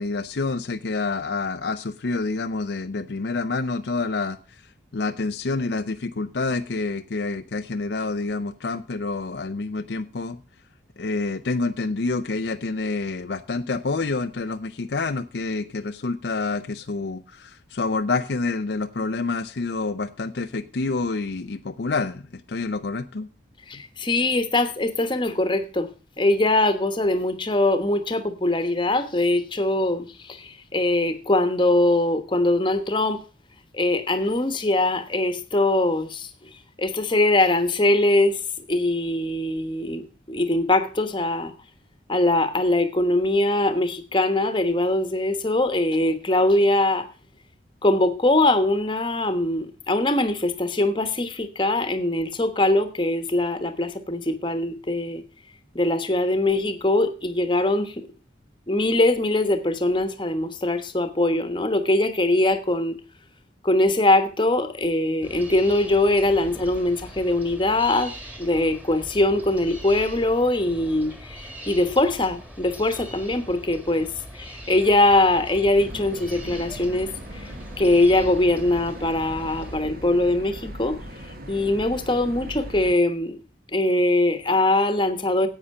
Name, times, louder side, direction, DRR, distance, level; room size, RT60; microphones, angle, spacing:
voice 1, 0.0-4.6 4.9-10.4 11.0-23.3, left 3 dB, 65° left, 8 dB, 0.6 m, -28 dB
voice 2, 23.7-25.9 26.2-33.2 33.7-36.3 36.8-41.5 42.1-47.1 47.8-55.2 55.7-58.1 58.7-63.0 63.6-68.1 68.4-77.5 77.8-81.0 81.5-83.4 83.7-85.5, left 2 dB, 25° left, 10 dB, 1.2 m, -22 dB
sound 1, 65.2-79.7, equal, 5° right, 1.9 m, -41 dB
sound 2, 75.7-82.9, equal, 50° right, 1.7 m, -39 dB
10.0 x 8.4 x 5.4 m, 0.34 s
head